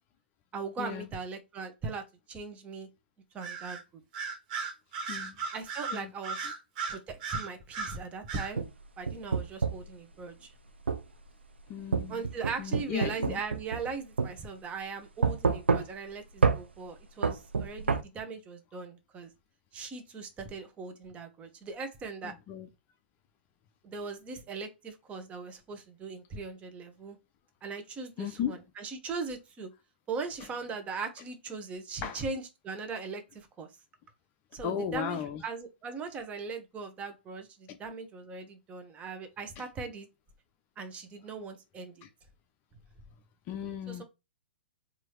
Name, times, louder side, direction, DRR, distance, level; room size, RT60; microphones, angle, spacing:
voice 1, 0.5-2.9 3.3-3.8 5.5-6.5 6.9-8.6 9.0-10.5 12.1-19.3 19.7-22.3 23.8-27.2 27.6-29.7 30.1-33.7 34.5-40.1 40.8-42.0 43.9-44.0, right 4 dB, 20° right, 1.1 m, -39 dB
Bird vocalization bird call bird song, 3.4-3.8 4.1-8.0 8.3-8.5, right 5 dB, 45° right, 1.7 m, -36 dB
sound 1, 8.5-9.9 10.9-11.1 11.9-13.9 14.2-14.3 15.2-16.1 16.4-16.6 17.2-18.0, right 5 dB, 80° right, 0.7 m, -27 dB
voice 2, 11.7-12.2 12.6-13.4 22.2-22.7 28.2-28.6 32.0-32.2 34.6-35.4 37.7-37.8 39.6-39.7 42.0-42.1 43.5-44.0, left 8 dB, 30° left, 0.6 m, -36 dB
4.6 x 2.8 x 3.0 m
figure-of-eight pair, 115°, 6 cm